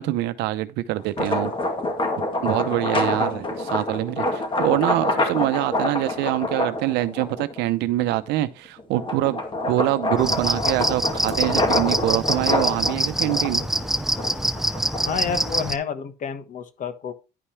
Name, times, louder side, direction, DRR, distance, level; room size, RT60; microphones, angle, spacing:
voice 1, 0.0-1.5 2.4-13.7, right 15 dB, 90° right, 0.7 m, -25 dB
sound 1, 1.0-7.6 8.1-15.3, left 2 dB, 30° left, 2.1 m, -26 dB
voice 2, 3.1-3.6 15.0-17.1, left 6 dB, 50° left, 1.3 m, -30 dB
sound 2, 10.2-15.8, right 1 dB, ahead, 0.6 m, -25 dB
11.0 x 5.5 x 3.2 m
cardioid pair, 110°, 17 cm